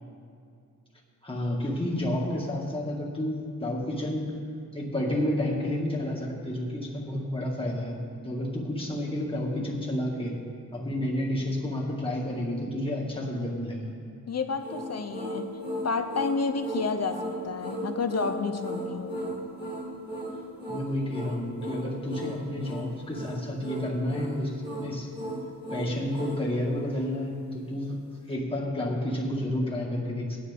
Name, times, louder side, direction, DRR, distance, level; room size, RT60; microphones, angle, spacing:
voice 1, 1.2-4.4 4.7-10.4 10.7-13.9 20.7-25.1 25.7-28.0 28.3-30.4, left 1 dB, 15° left, -3 dB, 2.2 m, -30 dB
voice 2, 14.3-15.5 15.8-19.4, left 4 dB, 45° left, 8 dB, 0.8 m, -30 dB
sound 1, 14.6-26.5, right 1 dB, 25° right, 2.1 m, -36 dB
16.5 x 10.5 x 3.6 m, 2.4 s
wide cardioid pair, 100°, 37 cm